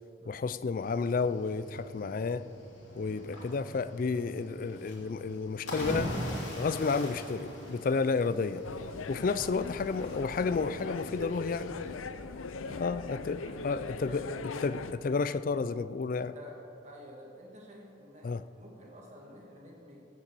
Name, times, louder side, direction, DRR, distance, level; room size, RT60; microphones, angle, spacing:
voice 1, 0.2-2.5 2.9-6.1 6.5-8.6 9.1-11.8 12.8-14.3 14.6-16.3 18.2-18.4, left 4 dB, 45° left, 14 dB, 0.3 m, -31 dB
Cricket / Waves surf, 0.8-12.0, equal, 65° left, 3.0 m, -42 dB
sound 1, 8.6-14.9, left 4 dB, 90° left, 0.6 m, -40 dB
voice 2, 9.3-10.0 12.2-14.2 16.3-16.6 16.8-18.3 18.6-20.0, equal, 35° right, -2 dB, 1.9 m, -51 dB
15.5 x 6.6 x 7.6 m, 2.8 s
head